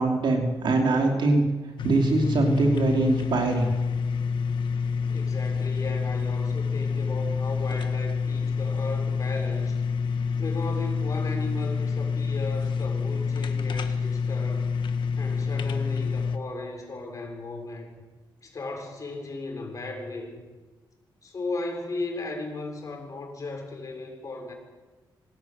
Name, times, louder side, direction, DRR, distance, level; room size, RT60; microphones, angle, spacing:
voice 1, 0.0-1.4 1.8-3.7, right 2 dB, 70° right, 2 dB, 5.2 m, -22 dB
sound 1, 1.8-16.4, left 5 dB, 75° left, 1.7 m, -27 dB
voice 2, 5.1-9.8 10.4-14.7 15.2-17.9 18.4-20.4 21.2-24.5, left 2 dB, 40° left, 2 dB, 6.8 m, -36 dB
26.5 x 20.0 x 8.2 m, 1.3 s
cardioid pair, 115°, 8 cm